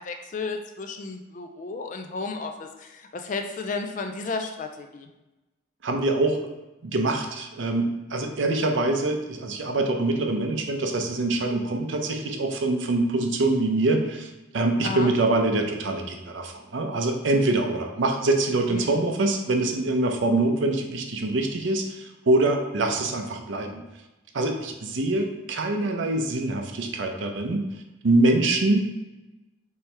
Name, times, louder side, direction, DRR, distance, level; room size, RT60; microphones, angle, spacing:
voice 1, 0.0-5.1 14.8-15.1 18.7-19.0, left 4 dB, 40° left, 5 dB, 0.3 m, -33 dB
voice 2, 5.8-6.4 6.8-23.8 24.3-27.6 28.0-28.8, right 2 dB, 65° right, 4 dB, 0.6 m, -24 dB
4.4 x 3.4 x 3.3 m, 1.1 s
head